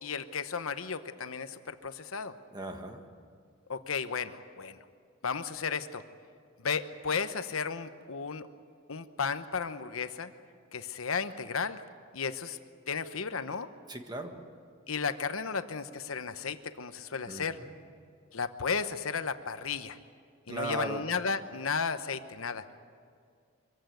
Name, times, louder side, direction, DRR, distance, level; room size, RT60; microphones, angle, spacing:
voice 1, 0.0-2.3 3.7-4.9 5.2-6.0 6.6-8.5 8.9-10.3 10.7-11.8 12.1-12.6 12.9-13.7 14.9-17.6 18.3-20.0 20.5-22.6, left 5 dB, 85° left, 10 dB, 1.0 m, -34 dB
voice 2, 2.5-3.0 13.9-14.3 17.3-17.7 20.5-21.0, right 1 dB, 20° right, 5 dB, 1.6 m, -37 dB
23.5 x 15.5 x 9.3 m, 2.2 s
head